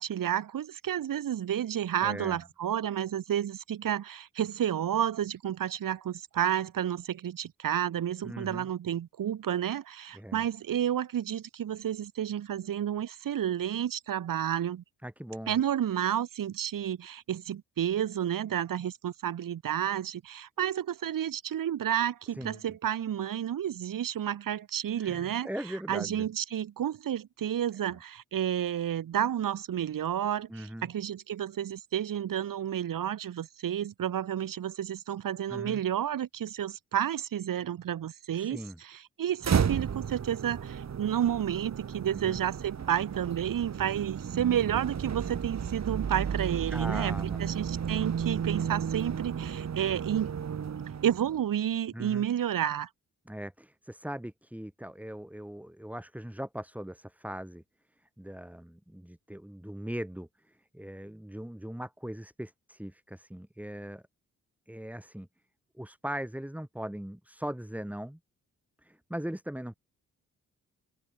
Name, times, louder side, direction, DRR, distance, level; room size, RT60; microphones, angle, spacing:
voice 1, 0.0-14.8 15.5-25.5 25.9-50.3 51.0-52.9, right 10 dB, 85° right, 3.0 m, -31 dB
voice 2, 2.0-2.4 8.2-8.7 10.1-10.5 15.0-15.6 22.4-22.6 25.0-26.3 30.5-30.9 35.5-35.8 38.3-38.8 42.1-42.4 46.7-47.6 51.9-52.3 53.3-57.6 58.2-64.0 64.7-65.3 65.8-68.2 68.8-69.8, equal, 5° right, 7.3 m, -40 dB
sound 1, 39.4-51.4, right 7 dB, 55° right, 1.7 m, -33 dB
open air
cardioid pair, 75°, 32 cm